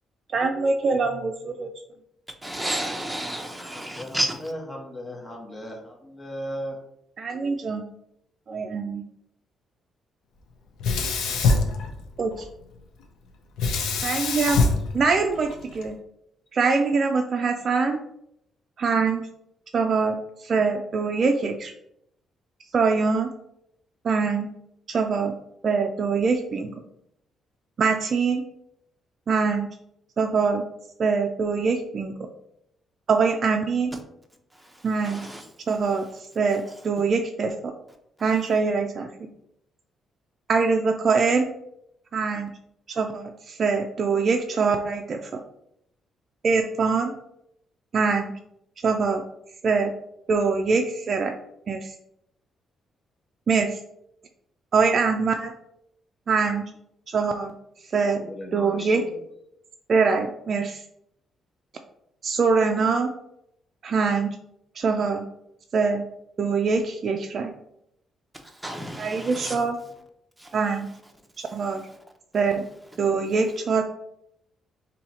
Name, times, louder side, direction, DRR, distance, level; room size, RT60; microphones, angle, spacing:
voice 1, 0.3-1.7 7.2-7.8 8.5-9.0 12.2-12.4 14.0-14.6 14.9-16.0 16.5-18.0 18.8-19.3 19.7-21.7 22.7-23.3 24.0-24.5 24.9-25.3 25.6-26.7 27.8-28.4 29.3-29.7 30.2-30.6 31.0-32.1 33.1-34.0 34.8-35.3 35.7-37.7 38.2-39.1 40.5-41.5 42.1-42.5 42.9-45.4 46.4-47.1 47.9-48.3 48.8-49.2 49.6-49.9 50.3-51.4 51.7-51.8 53.5-53.8 54.7-55.5 56.3-56.6 57.1-57.5 57.9-58.2 58.5-59.0 59.9-60.8 62.2-63.1 63.8-64.4 64.8-65.3 65.7-66.1 66.4-67.5 69.0-69.8 70.5-70.9 71.4-71.9 72.3-72.6 73.0-73.8, right 4 dB, 50° right, 3 dB, 0.3 m, -23 dB
voice 2, 2.4-4.5 33.9-34.0 34.5-35.5 68.4-69.7 70.4-70.6 71.4-72.0, right 1 dB, 5° right, 3 dB, 0.7 m, -32 dB
voice 3, 3.6-6.8 58.0-59.2, equal, 30° left, 1 dB, 0.9 m, -37 dB
Sink (filling or washing), 10.8-12.4 13.6-15.8, left 3 dB, 85° left, 0.5 m, -24 dB
2.8 x 2.7 x 4.2 m, 0.76 s
cardioid pair, 90°, 0 cm